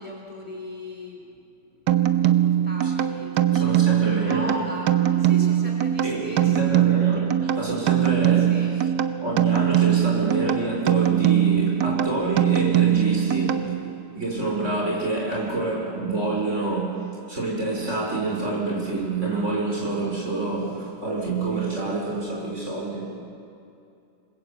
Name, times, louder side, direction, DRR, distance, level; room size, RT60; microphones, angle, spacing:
voice 1, 0.0-1.4 2.2-6.8 8.4-8.7, left 1 dB, 20° left, -1 dB, 3.6 m, -38 dB
sound 1, 1.9-14.0, right 11 dB, 85° right, 1.5 m, -22 dB
voice 2, 3.5-4.6 6.0-8.9 9.2-23.2, right 2 dB, 45° right, -2 dB, 5.3 m, -27 dB
27.5 x 21.0 x 8.2 m, 2.6 s
omnidirectional pair, 1.8 m